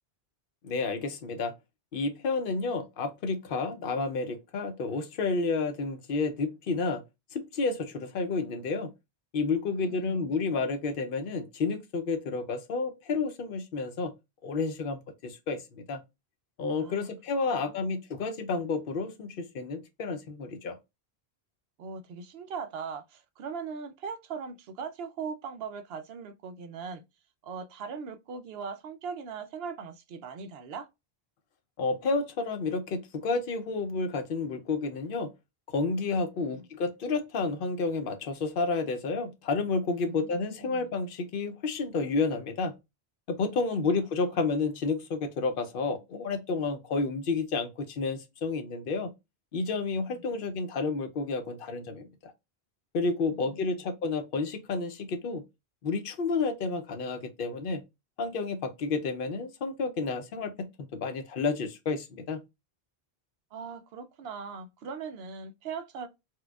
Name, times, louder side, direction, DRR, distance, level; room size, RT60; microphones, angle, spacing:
voice 1, 0.6-1.5 1.9-7.0 7.3-8.9 9.3-14.1 14.4-16.0 16.6-20.8 31.8-35.3 35.7-42.7 43.3-49.1 49.5-52.3 52.9-55.4 55.8-57.8 58.2-62.4, left 4 dB, 60° left, 0.8 m, -30 dB
voice 2, 9.6-10.3 16.8-17.1 17.5-18.0 21.8-27.0 27.4-30.9 36.5-36.6 39.9-40.9 50.3-50.4 53.2-53.8 63.5-66.1, right 5 dB, 70° right, 0.8 m, -40 dB
4.4 x 2.2 x 2.3 m
omnidirectional pair, 1.1 m